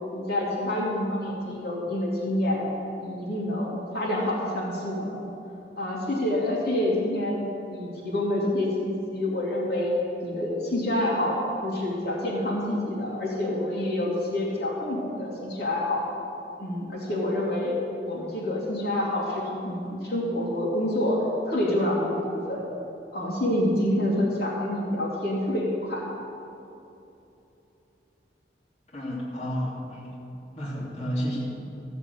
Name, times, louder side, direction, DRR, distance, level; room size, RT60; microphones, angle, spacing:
voice 1, 0.1-2.6 3.0-5.2 5.8-7.4 7.7-9.9 10.2-16.0 16.6-17.8 18.0-22.6 23.1-26.1, left 1 dB, 60° left, -4 dB, 3.0 m, -27 dB
voice 2, 28.9-30.2 30.6-31.6, equal, 40° left, -6 dB, 2.8 m, -31 dB
14.5 x 7.4 x 8.2 m, 2.8 s
head